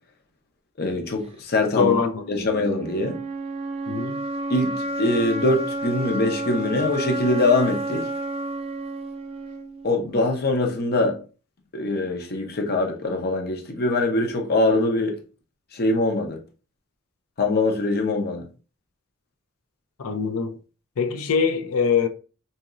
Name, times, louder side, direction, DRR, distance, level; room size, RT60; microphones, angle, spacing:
voice 1, 0.8-1.9 2.3-3.2 4.5-8.1 9.8-11.2 11.7-15.2 15.7-16.4 17.4-18.5, left 2 dB, 45° left, 0.7 m, -23 dB
voice 2, 1.8-2.5 3.9-4.2 20.0-20.6 21.0-22.1, left 6 dB, 80° left, 0.5 m, -23 dB
sound 1, 2.1-10.1, right 2 dB, 30° right, 0.5 m, -30 dB
4.1 x 2.9 x 2.5 m
head